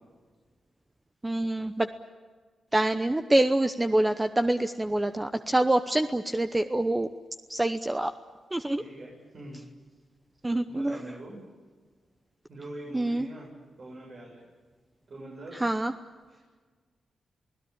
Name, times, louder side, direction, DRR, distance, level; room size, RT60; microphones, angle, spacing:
voice 1, 1.2-1.9 2.7-7.1 7.5-8.1 8.5-8.8 10.4-11.0 12.9-13.3 15.6-15.9, right 1 dB, 20° right, 8 dB, 0.9 m, -26 dB
voice 2, 8.8-9.6 10.7-11.4 12.5-14.4 15.1-15.6 16.3-16.5, right 1 dB, 55° right, -3 dB, 7.5 m, -44 dB
28.0 x 17.5 x 8.9 m, 1.5 s
cardioid pair, 70°, 0 cm